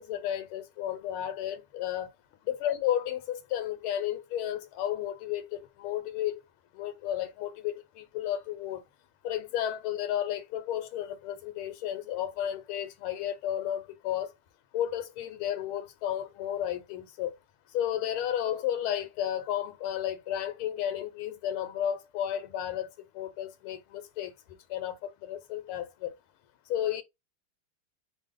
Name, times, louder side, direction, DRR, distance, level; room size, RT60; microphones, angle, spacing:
voice 1, 0.0-2.1 2.4-6.4 6.7-8.8 9.2-14.3 14.7-17.3 17.7-24.3 24.7-26.1 26.7-27.0, left 11 dB, 80° left, 1.5 m, -33 dB
3.5 x 2.0 x 3.6 m
omnidirectional pair, 2.4 m